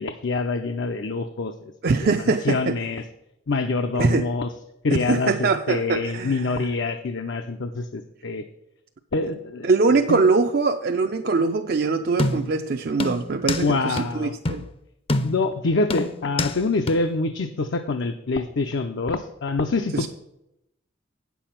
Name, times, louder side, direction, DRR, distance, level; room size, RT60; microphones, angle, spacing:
voice 1, 0.0-1.5 2.0-3.0 3.5-4.5 4.8-8.4 9.1-9.7 10.1-10.2 13.5-14.3 15.2-20.1, left 3 dB, 70° left, 0.6 m, -25 dB
voice 2, 1.8-2.8 4.0-4.3 4.9-6.7 9.6-14.6 19.9-20.1, right 4 dB, 50° right, 0.4 m, -22 dB
sound 1, 12.2-12.6 13.0-13.7 14.0-14.1 14.4-14.7 15.1-15.5 15.9-16.6 16.9-17.0, left 2 dB, 30° left, 0.5 m, -26 dB
9.2 x 7.0 x 5.8 m
head